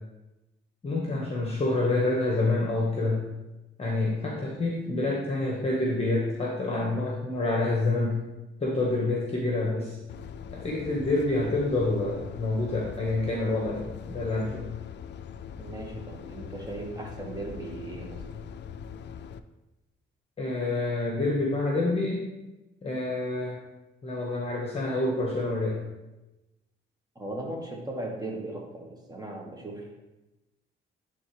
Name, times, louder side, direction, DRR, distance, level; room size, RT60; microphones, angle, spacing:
voice 1, 0.8-3.2 3.8-8.2 8.6-10.0 10.5-14.7 20.4-22.2 22.8-23.6 24.0-25.8, left 2 dB, 30° left, -3 dB, 1.3 m, -27 dB
sound 1, 10.1-19.4, left 7 dB, 55° left, 0.4 m, -41 dB
voice 2, 15.6-18.2 27.1-30.0, right 2 dB, 20° right, -1 dB, 1.6 m, -37 dB
10.0 x 3.7 x 3.3 m, 1.0 s
cardioid pair, 95°, 21 cm